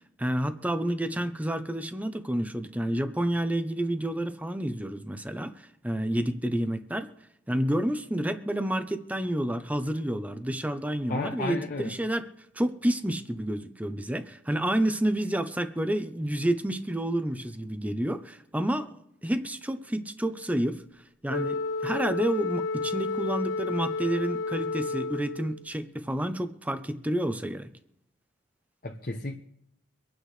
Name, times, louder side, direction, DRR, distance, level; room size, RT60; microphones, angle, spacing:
voice 1, 0.2-7.1 7.5-12.3 12.5-18.9 19.2-20.8 21.2-27.7, right 1 dB, 10° right, 9 dB, 0.7 m, -29 dB
voice 2, 11.1-12.0 28.8-29.3, left 2 dB, 45° left, 1 dB, 0.9 m, -32 dB
Wind instrument woodwind instrument, 21.3-25.7, left 3 dB, 75° left, 0.9 m, -31 dB
25.0 x 9.3 x 3.3 m, 0.78 s
head